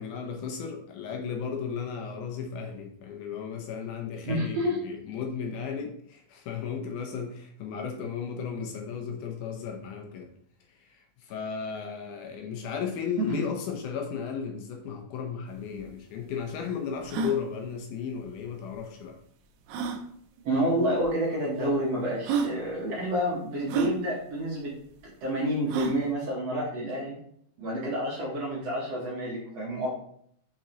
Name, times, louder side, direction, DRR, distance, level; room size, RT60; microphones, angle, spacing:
voice 1, 0.0-10.3 10.9-19.2, left 6 dB, 75° left, 3 dB, 2.1 m, -35 dB
voice 2, 4.2-4.8 13.2-13.4 20.4-24.7 25.0-27.2 27.6-29.9, right 1 dB, 60° right, -4 dB, 1.9 m, -29 dB
sound 1, 15.5-15.6 15.8-15.9 16.4-16.5 17.0-17.4 18.7-18.8 19.7-20.0 21.0-21.1 21.8-21.9 22.2-22.5 23.7-23.9 25.7-26.0, right 5 dB, 80° right, 1.7 m, -28 dB
5.8 x 5.5 x 3.0 m, 0.67 s
omnidirectional pair, 3.9 m